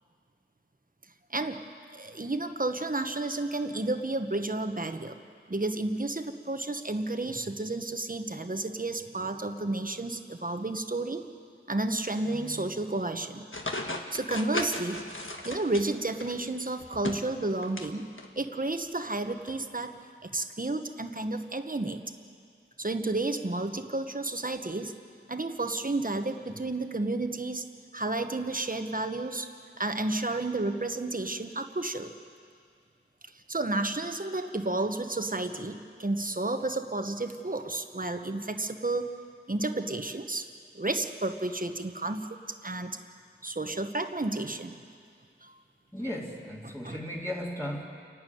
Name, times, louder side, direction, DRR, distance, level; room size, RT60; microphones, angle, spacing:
voice 1, 1.3-1.6 1.9-5.2 5.5-11.2 11.7-13.5 14.1-15.0 15.4-18.1 18.4-20.0 20.2-22.0 22.8-24.9 25.3-27.7 27.9-29.5 29.8-32.1 33.3-39.1 39.5-40.5 40.7-43.0 43.4-44.8 45.4-45.6 46.8-47.0, right 2 dB, 40° right, 7 dB, 1.3 m, -31 dB
sound 1, 13.5-16.3 16.8-17.9 18.2-18.3 19.5-19.6, left 2 dB, 75° left, 1.6 m, -36 dB
voice 2, 45.9-47.8, equal, 10° left, -5 dB, 2.4 m, -35 dB
29.0 x 12.0 x 9.3 m, 2.2 s
wide cardioid pair, 45°, 21 cm